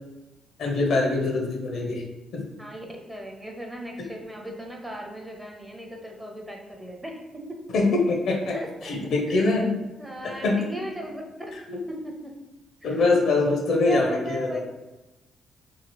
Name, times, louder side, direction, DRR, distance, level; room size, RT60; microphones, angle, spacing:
voice 1, 0.6-2.0 2.3-2.4 7.7-8.6 8.8-9.7 10.2-10.6 11.7-11.8 12.8-14.6, left 3 dB, 70° left, 1 dB, 0.6 m, -23 dB
voice 2, 2.6-7.6 8.5-8.9 9.3-9.6 10.0-11.6 11.9-12.3 12.8-13.0 13.7-14.6, right 1 dB, 10° right, 1 dB, 0.6 m, -37 dB
2.7 x 2.4 x 3.0 m, 1.0 s
cardioid pair, 90°, 0 cm